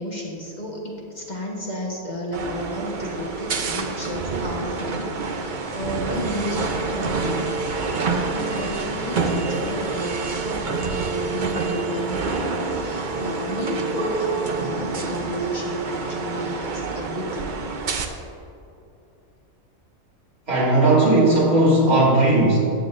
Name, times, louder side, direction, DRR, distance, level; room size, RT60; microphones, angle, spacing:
voice 1, 0.0-6.6 6.9-7.7 8.1-17.5, equal, 35° left, -2 dB, 1.3 m, -31 dB
sound 1, 2.3-18.1, right 4 dB, 45° right, 0.7 m, -27 dB
voice 2, 20.5-22.6, right 2 dB, 85° right, -7 dB, 3.0 m, -17 dB
13.5 x 9.2 x 2.6 m, 2.6 s
omnidirectional pair, 1.5 m